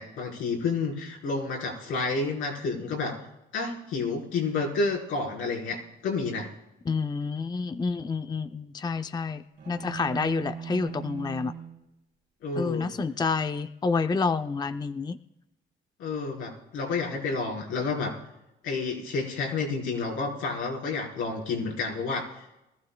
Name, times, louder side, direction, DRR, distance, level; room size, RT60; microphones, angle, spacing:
voice 1, 0.0-3.2 3.5-6.5 12.4-12.9 16.0-18.1 18.6-22.4, left 4 dB, 90° left, -2 dB, 4.5 m, -30 dB
voice 2, 6.9-11.5 12.5-15.2, left 4 dB, 20° left, 9 dB, 0.5 m, -29 dB
sound 1, 9.6-11.8, right 7 dB, 65° right, 3.0 m, -39 dB
23.5 x 14.0 x 2.3 m, 0.91 s
cardioid pair, 90°, 20 cm